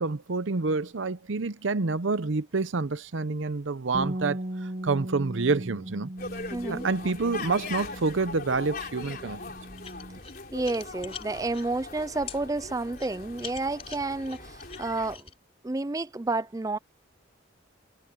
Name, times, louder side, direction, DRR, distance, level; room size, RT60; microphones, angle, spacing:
voice 1, 0.0-6.1 6.7-9.5, right 3 dB, 80° right, 0.7 m, -28 dB
Bass guitar, 3.9-10.2, right 1 dB, 40° right, 0.8 m, -38 dB
sound 1, 6.2-15.2, left 3 dB, 45° left, 4.1 m, -40 dB
voice 2, 6.5-6.9 10.5-15.3 15.6-16.8, right 2 dB, 15° right, 0.4 m, -30 dB
sound 2, 9.8-11.7 12.3-12.4 12.9-15.3, left 8 dB, 30° left, 3.7 m, -43 dB
head